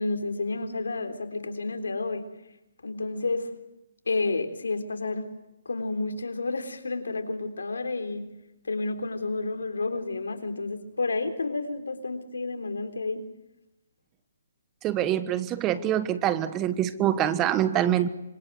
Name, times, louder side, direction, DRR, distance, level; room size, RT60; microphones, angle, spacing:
voice 1, 0.0-2.3 2.8-3.5 4.1-5.3 5.7-8.3 8.6-13.2, left 3 dB, 85° left, 7 dB, 3.8 m, -30 dB
voice 2, 14.8-18.1, right 11 dB, 20° right, 13 dB, 1.3 m, -25 dB
25.5 x 25.0 x 7.9 m, 0.93 s
hypercardioid pair, 150°, 0 cm